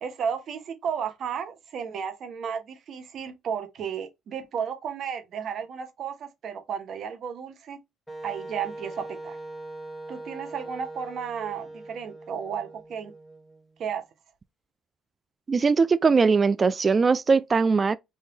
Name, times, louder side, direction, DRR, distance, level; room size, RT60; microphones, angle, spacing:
voice 1, 0.0-7.8 8.2-9.4 10.1-13.1 13.8-14.0, right 7 dB, 60° right, 1.0 m, -33 dB
Wind instrument woodwind instrument, 8.1-13.9, right 2 dB, 10° left, 1.1 m, -41 dB
voice 2, 15.5-18.0, right 4 dB, 35° right, 0.3 m, -20 dB
3.6 x 2.6 x 3.8 m
supercardioid pair, 75°, 0 cm